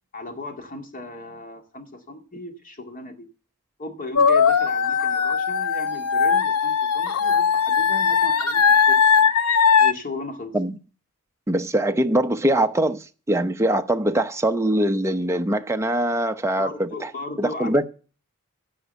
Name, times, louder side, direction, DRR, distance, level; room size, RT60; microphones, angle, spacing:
voice 1, 0.1-3.3 3.8-9.3 9.8-10.5 16.6-17.9, left 2 dB, 40° left, 2.1 m, -37 dB
sound 1, 4.2-9.9, left 6 dB, 90° left, 0.8 m, -19 dB
voice 2, 11.5-17.1 17.4-17.8, right 1 dB, 10° right, 0.7 m, -22 dB
15.5 x 5.5 x 8.0 m
head